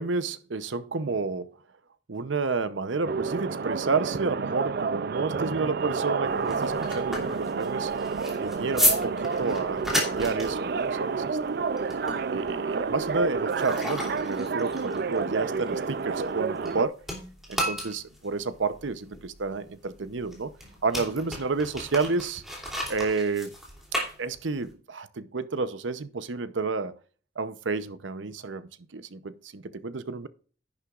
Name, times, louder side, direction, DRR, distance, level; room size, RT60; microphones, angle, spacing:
voice 1, 0.0-1.5 2.1-7.9 8.4-11.6 12.3-17.0 17.5-20.5 20.8-22.4 22.9-23.5 24.2-26.9 27.4-30.3, right 4 dB, 85° right, 0.8 m, -30 dB
sound 1, 3.0-16.9, right 4 dB, 55° right, 0.4 m, -30 dB
sound 2, 6.2-16.7 17.0-24.7, equal, ahead, 2.9 m, -33 dB
10.5 x 9.9 x 2.5 m
head